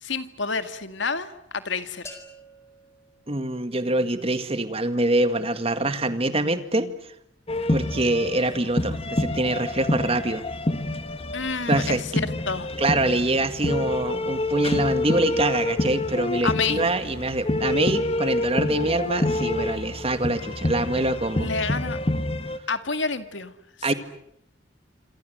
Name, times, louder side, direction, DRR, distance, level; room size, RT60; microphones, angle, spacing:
voice 1, 0.0-2.2 11.3-12.7 16.4-16.8 21.4-22.0 22.7-23.5, left 4 dB, 75° left, 10 dB, 2.0 m, -29 dB
sound 1, 2.0-4.0, left 1 dB, 15° left, 4.4 m, -47 dB
voice 2, 3.3-6.9 7.7-10.4 11.7-12.0 12.8-21.5 23.8-23.9, right 2 dB, 30° right, 10 dB, 1.9 m, -25 dB
sound 2, 7.5-22.6, left 1 dB, 30° left, 1.6 m, -27 dB
27.0 x 27.0 x 8.0 m, 0.75 s
head